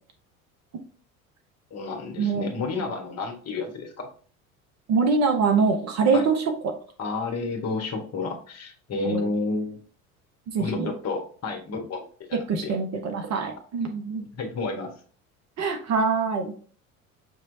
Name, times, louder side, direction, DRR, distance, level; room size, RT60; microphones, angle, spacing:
voice 1, 1.7-4.1 6.1-6.2 7.0-9.8 10.6-12.0 12.3-12.7 14.3-14.9, left 3 dB, 35° left, 2 dB, 1.3 m, -31 dB
voice 2, 4.9-6.7 9.0-9.2 10.5-10.9 12.5-14.3 15.6-16.6, right 4 dB, 35° right, 4 dB, 0.9 m, -24 dB
6.4 x 3.1 x 2.7 m, 0.43 s
figure-of-eight pair, 65°, 43 cm